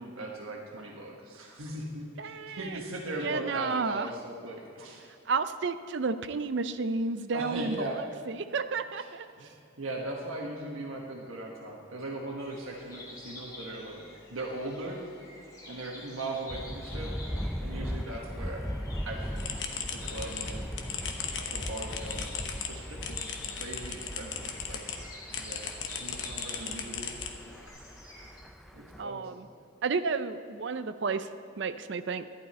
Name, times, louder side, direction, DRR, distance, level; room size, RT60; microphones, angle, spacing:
voice 1, 0.0-5.0 7.3-8.0 9.0-9.1 9.4-14.0 14.3-15.0 15.7-17.1 17.6-18.6 19.0-19.7 19.9-20.7 21.5-24.8 25.4-25.7 26.0-27.1 28.7-29.4, right 1 dB, 85° right, 0 dB, 1.3 m, -39 dB
voice 2, 2.2-2.8 3.2-4.1 5.3-9.3 15.7-16.0 26.6-27.0 29.0-29.5 29.8-31.3 31.6-32.2, right 4 dB, 55° right, 11 dB, 0.5 m, -32 dB
sound 1, 12.4-28.4, left 2 dB, 15° left, 1.8 m, -49 dB
Thunder, 16.5-29.0, equal, ahead, 0.3 m, -39 dB
sound 2, 19.4-25.0 25.3-27.7, left 6 dB, 60° left, 1.0 m, -38 dB
12.0 x 11.0 x 4.3 m, 2.6 s
head